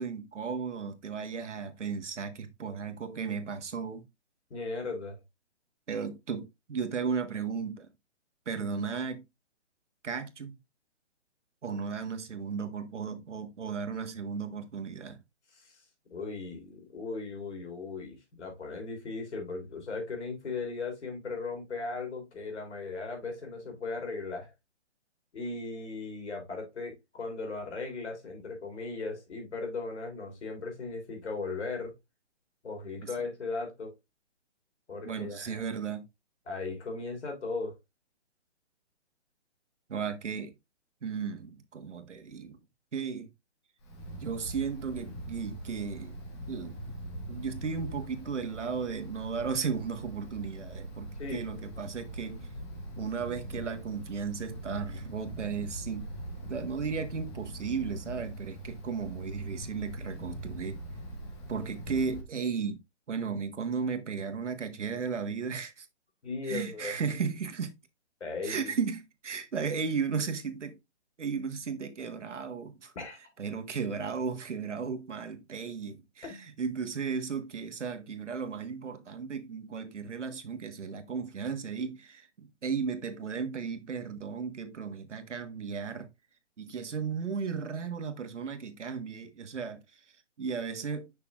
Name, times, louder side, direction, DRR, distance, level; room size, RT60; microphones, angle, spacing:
voice 1, 0.0-4.1 5.9-7.9 8.4-9.2 10.0-10.6 11.6-15.2 33.0-33.3 35.0-36.0 39.9-40.5 41.0-42.6 42.9-43.3 44.2-46.2 46.5-47.0 47.3-52.5 53.0-56.1 56.5-60.8 61.5-62.8 63.1-65.9 66.4-67.8 68.4-70.8 71.2-72.9 73.4-86.1 86.6-90.0 90.4-91.1, right 5 dB, 85° right, 1.4 m, -35 dB
voice 2, 4.5-5.2 15.6-15.8 16.1-24.5 25.3-31.9 32.6-33.9 34.9-35.6 36.5-37.8 51.2-51.4 66.2-66.9 68.2-68.7 72.9-73.2 76.2-76.4, left 3 dB, 70° left, 3.3 m, -37 dB
Wind, 43.8-62.2, right 1 dB, 25° left, 1.2 m, -42 dB
6.8 x 6.0 x 2.4 m
hypercardioid pair, 160°, 35 cm